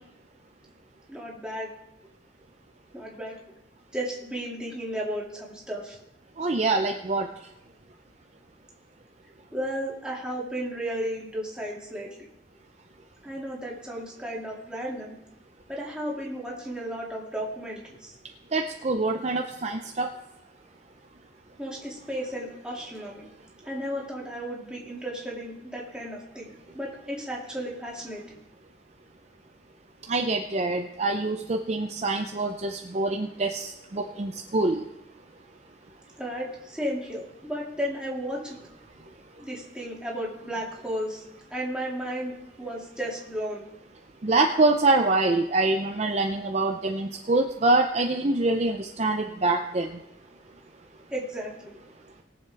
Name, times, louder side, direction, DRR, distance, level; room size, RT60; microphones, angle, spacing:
voice 1, 1.1-1.7 2.9-3.4 3.9-6.0 9.5-12.3 13.2-15.2 15.7-18.2 21.6-23.3 23.6-28.4 36.2-38.6 39.4-41.2 41.5-43.6 51.1-51.7, equal, 5° right, -4 dB, 2.2 m, -34 dB
voice 2, 6.4-7.3 18.5-20.1 30.1-34.8 44.2-49.9, right 2 dB, 35° right, 3 dB, 0.5 m, -25 dB
20.5 x 7.2 x 3.4 m, 0.88 s
head